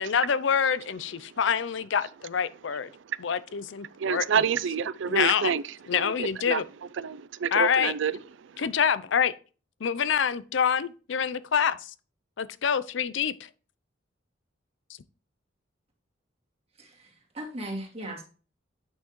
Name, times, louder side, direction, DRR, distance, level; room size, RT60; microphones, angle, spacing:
voice 1, 0.0-2.9 3.2-4.2 5.1-5.5 5.9-6.6 7.5-7.9 8.6-9.3 9.8-11.9 12.4-13.5, left 7 dB, 70° left, 0.5 m, -26 dB
voice 2, 4.0-5.6 5.9-6.6 7.0-8.1 8.4-8.7, right 7 dB, 70° right, 0.4 m, -28 dB
voice 3, 16.8-18.2, right 1 dB, 30° right, 2.1 m, -38 dB
8.9 x 5.7 x 3.1 m
head